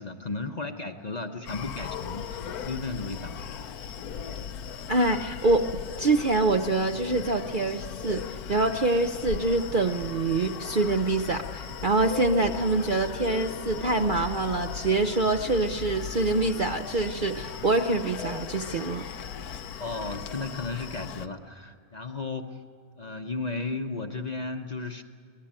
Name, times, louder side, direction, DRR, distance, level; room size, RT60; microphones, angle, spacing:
voice 1, 0.0-3.3 19.8-22.6 23.0-25.0, left 3 dB, 35° left, 5 dB, 0.8 m, -34 dB
Screaming, 1.5-21.3, left 7 dB, 80° left, 1.3 m, -38 dB
voice 2, 4.9-5.7 6.0-19.1, right 2 dB, 50° right, 5 dB, 0.6 m, -25 dB
23.5 x 19.0 x 8.8 m, 2.3 s
omnidirectional pair, 1.6 m